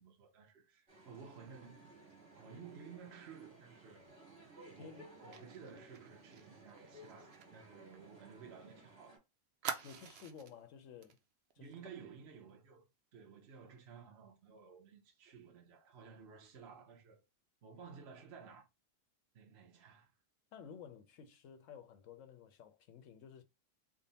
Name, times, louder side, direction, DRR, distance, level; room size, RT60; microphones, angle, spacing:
voice 1, 0.0-1.9 2.4-4.1 4.7-9.2 11.6-12.9 13.1-17.2 17.6-18.7 19.3-20.1, right 6 dB, 50° right, 0.9 m, -55 dB
sound 1, 0.9-9.2, right 1 dB, 35° right, 1.8 m, -58 dB
voice 2, 4.8-5.1 9.8-11.2 11.6-11.9 20.5-23.4, left 7 dB, 65° left, 0.8 m, -54 dB
Fire, 5.3-8.8 9.0-9.1 9.6-10.6 11.0-11.2 11.5-11.7, right 7 dB, 75° right, 0.5 m, -47 dB
3.6 x 2.1 x 3.9 m
omnidirectional pair, 1.6 m